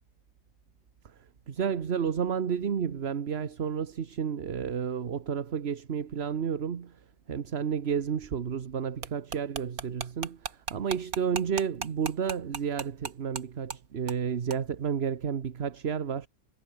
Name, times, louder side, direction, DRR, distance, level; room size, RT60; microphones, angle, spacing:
voice 1, 1.5-6.9 7.3-10.4 10.7-16.3, right 7 dB, 50° right, 1.3 m, -31 dB
sound 1, 9.0-13.4 13.7-13.8 14.1-14.2 14.5-14.6, right 7 dB, 80° right, 2.0 m, -35 dB
omnidirectional pair, 1.5 m